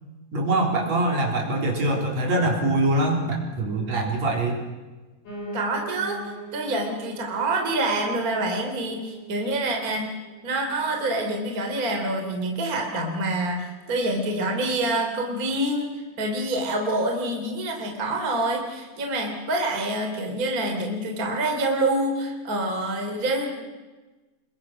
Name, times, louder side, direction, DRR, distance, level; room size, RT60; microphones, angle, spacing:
voice 1, 0.3-4.6, right 2 dB, 45° right, 1 dB, 4.8 m, -23 dB
Piano, 5.3-14.4 14.8-15.9 16.2-16.3 16.5-16.6 16.9-17.0 17.5-17.6, right 1 dB, 55° left, 9.7 m, -42 dB
voice 2, 5.5-6.2 6.5-10.1 10.4-23.6, right 2 dB, 25° right, 2 dB, 3.1 m, -26 dB
28.5 x 22.5 x 6.1 m, 1.2 s
omnidirectional pair, 4.5 m